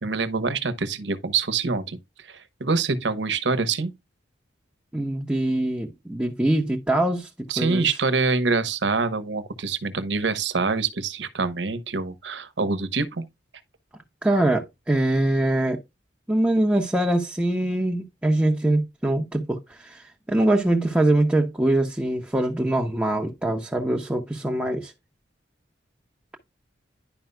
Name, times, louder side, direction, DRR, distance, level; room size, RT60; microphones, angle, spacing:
voice 1, 0.0-3.9 7.5-13.2, right 4 dB, 75° right, 1.0 m, -25 dB
voice 2, 4.9-7.3 7.6-7.9 14.2-15.8 16.3-24.9, right 1 dB, 5° right, 0.9 m, -23 dB
10.5 x 5.4 x 2.2 m
head